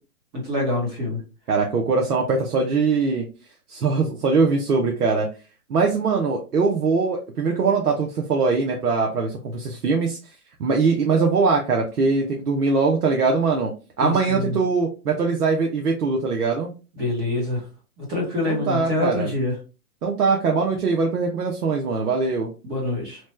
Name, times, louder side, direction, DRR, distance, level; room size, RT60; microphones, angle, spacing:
voice 1, 0.3-1.2 14.0-14.6 16.9-17.6 18.0-19.5 22.6-23.2, left 2 dB, 15° right, -3 dB, 0.7 m, -25 dB
voice 2, 1.5-3.3 3.7-5.3 5.7-10.2 10.6-13.7 14.0-16.7 18.4-19.3 20.0-22.5, right 4 dB, 85° right, 0 dB, 0.8 m, -22 dB
3.1 x 2.1 x 3.1 m, 0.32 s
hypercardioid pair, 145°, 45 cm